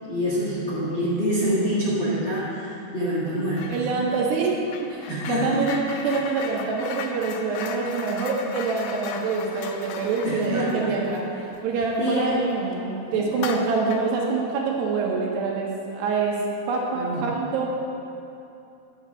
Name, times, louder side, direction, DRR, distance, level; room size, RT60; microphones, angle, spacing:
voice 1, 0.0-3.8 5.1-5.6 10.2-10.9 12.0-12.4 13.1-13.3 16.9-17.2, equal, 50° left, -8 dB, 1.4 m, -26 dB
sound 1, 3.5-3.9 4.1-12.3 12.7-12.8 13.3-14.2, left 6 dB, 85° left, 2.8 m, -37 dB
voice 2, 3.7-4.5 4.9-16.4 16.7-17.7, right 4 dB, 75° right, -2 dB, 3.2 m, -26 dB
10.0 x 6.9 x 6.3 m, 2.8 s
omnidirectional pair, 5.0 m